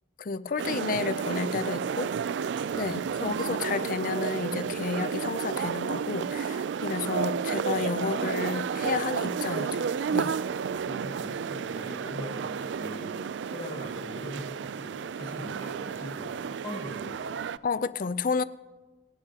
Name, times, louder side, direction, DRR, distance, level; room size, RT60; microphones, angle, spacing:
voice 1, 0.2-2.1 2.7-9.9 10.1-10.4 17.6-18.4, left 4 dB, 50° left, 0.5 m, -31 dB
sound 1, 0.6-17.6, right 6 dB, 80° right, 0.4 m, -31 dB
voice 2, 2.7-3.4 4.6-4.8 10.3-13.1 13.4-17.4, equal, 30° left, 4.9 m, -42 dB
29.5 x 11.5 x 2.9 m
head